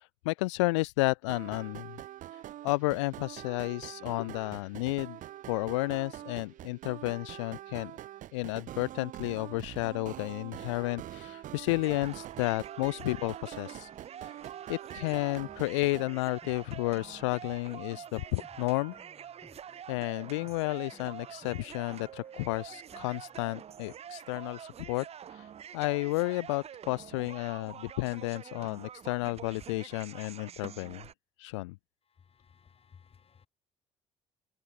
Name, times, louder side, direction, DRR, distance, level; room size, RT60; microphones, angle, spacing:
voice 1, 0.0-2.0 2.3-5.2 5.5-7.9 8.3-13.9 14.2-14.4 14.7-18.9 19.9-25.1 25.3-31.0 31.4-31.8, left 23 dB, 85° left, 0.4 m, -32 dB
sound 1, 1.3-16.1, right 13 dB, 60° right, 1.4 m, -45 dB
sound 2, 11.8-31.1, right 9 dB, 45° right, 0.8 m, -46 dB
sound 3, 15.4-23.4, left 2 dB, 15° left, 4.5 m, -60 dB
voice 2, 32.4-33.5, left 7 dB, 40° left, 2.7 m, -59 dB
hypercardioid pair, 60°, 15 cm